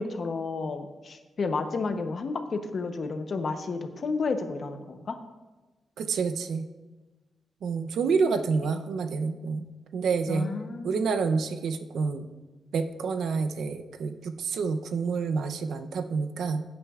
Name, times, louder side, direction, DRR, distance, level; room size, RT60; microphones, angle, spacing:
voice 1, 0.0-5.2 10.3-11.0, left 4 dB, 40° left, 7 dB, 0.8 m, -31 dB
voice 2, 6.0-6.7 7.6-9.7 9.9-10.5 10.8-12.3 12.7-16.6, right 5 dB, 75° right, 8 dB, 0.6 m, -28 dB
16.0 x 8.7 x 2.4 m, 1.2 s
wide cardioid pair, 170°, 0 cm